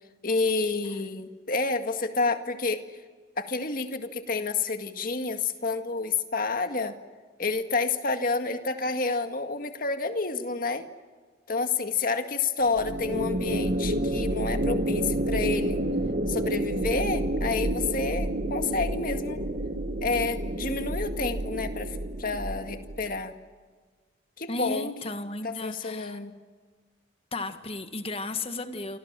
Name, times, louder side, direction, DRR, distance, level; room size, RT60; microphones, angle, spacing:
voice 1, 0.2-2.8 3.4-7.0 7.4-10.9 11.5-15.8 16.3-19.4 20.0-23.4 24.4-24.9 25.4-26.3, left 3 dB, 45° left, 7 dB, 1.9 m, -29 dB
sound 1, 12.7-23.2, right 1 dB, 45° right, 1.2 m, -29 dB
voice 2, 24.5-26.2 27.3-29.0, left 2 dB, 30° left, 8 dB, 1.7 m, -34 dB
28.0 x 26.0 x 7.5 m, 1.5 s
head